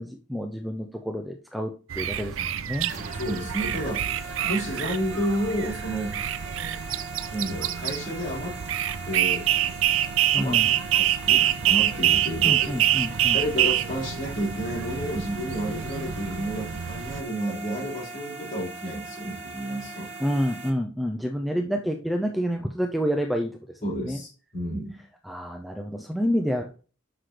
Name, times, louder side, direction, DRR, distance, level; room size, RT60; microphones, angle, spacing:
voice 1, 0.0-2.9 10.3-10.7 12.4-13.4 20.2-23.5 24.0-24.2 25.2-26.7, equal, ahead, 3 dB, 0.5 m, -28 dB
sound 1, 1.9-17.2, right 11 dB, 75° right, 0.5 m, -26 dB
sound 2, 2.9-20.7, right 3 dB, 35° right, 2.0 m, -40 dB
voice 2, 3.2-4.0 4.4-6.2 7.3-8.6 9.1-9.5 10.3-10.6 10.9-12.8 13.3-20.1 23.8-25.0, equal, 40° left, -5 dB, 4.6 m, -31 dB
9.9 x 6.4 x 3.3 m, 0.38 s
head